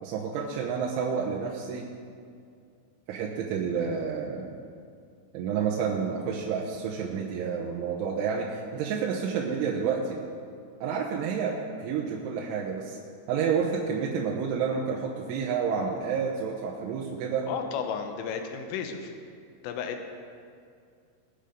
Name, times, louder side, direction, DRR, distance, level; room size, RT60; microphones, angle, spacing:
voice 1, 0.0-1.9 3.1-4.6 5.3-10.2 10.8-13.0 13.3-17.5, right 6 dB, 75° right, -2 dB, 3.3 m, -29 dB
voice 2, 17.5-19.1 19.6-20.1, left 6 dB, 80° left, 5 dB, 3.5 m, -33 dB
20.5 x 7.3 x 5.1 m, 2.3 s
omnidirectional pair, 5.9 m